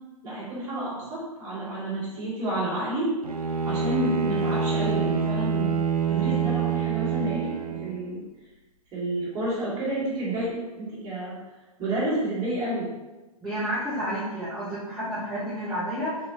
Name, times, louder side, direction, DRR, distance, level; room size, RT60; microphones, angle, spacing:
voice 1, 0.2-3.1 3.6-5.8 6.1-8.2 8.9-11.4 11.8-12.9, right 1 dB, 20° right, -8 dB, 1.4 m, -30 dB
Bowed string instrument, 3.2-8.1, right 5 dB, 85° right, 0.4 m, -26 dB
voice 2, 13.4-16.3, equal, ahead, -12 dB, 0.6 m, -30 dB
3.5 x 2.6 x 2.9 m, 1.1 s
figure-of-eight pair, 125°, 19 cm